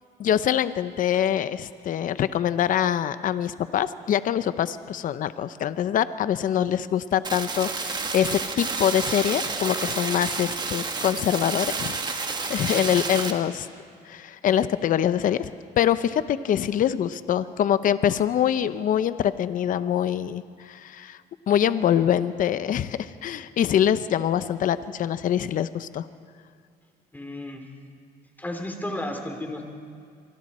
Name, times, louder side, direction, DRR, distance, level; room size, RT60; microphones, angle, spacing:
voice 1, 0.2-13.7 14.1-15.5 15.8-21.2 21.5-26.1, left 10 dB, 50° left, 13 dB, 0.7 m, -24 dB
sound 1, 7.2-13.3, right 4 dB, 25° right, 1.7 m, -30 dB
voice 2, 12.6-12.9 27.1-27.7 28.4-29.6, left 1 dB, 10° left, 4 dB, 3.0 m, -33 dB
25.5 x 24.0 x 4.3 m, 2.2 s
cardioid pair, 110°, 17 cm